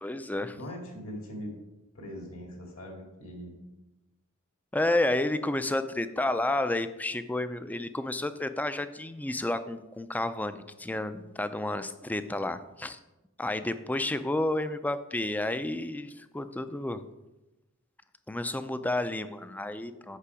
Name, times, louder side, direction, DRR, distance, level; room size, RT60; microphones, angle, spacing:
voice 1, 0.0-0.6 4.7-13.0 13.4-17.0 18.3-20.2, left 2 dB, 10° left, 11 dB, 0.4 m, -31 dB
voice 2, 0.5-1.6 1.9-3.7, equal, 70° left, 1 dB, 2.4 m, -41 dB
8.4 x 6.0 x 4.9 m, 1.0 s
head